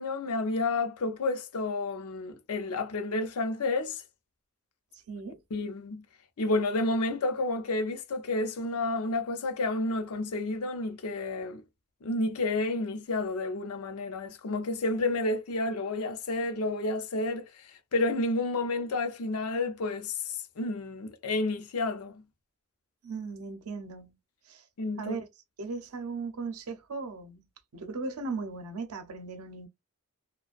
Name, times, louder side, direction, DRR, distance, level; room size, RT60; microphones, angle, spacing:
voice 1, 0.0-4.0 5.5-6.0 6.4-11.6 12.0-20.2 20.6-22.2 24.8-25.2, left 2 dB, 90° left, 0.5 m, -30 dB
voice 2, 5.1-5.4 23.0-24.2 24.5-24.6 25.0-25.3 25.6-27.5 27.7-29.7, right 4 dB, 85° right, 0.6 m, -37 dB
2.4 x 2.1 x 2.3 m
head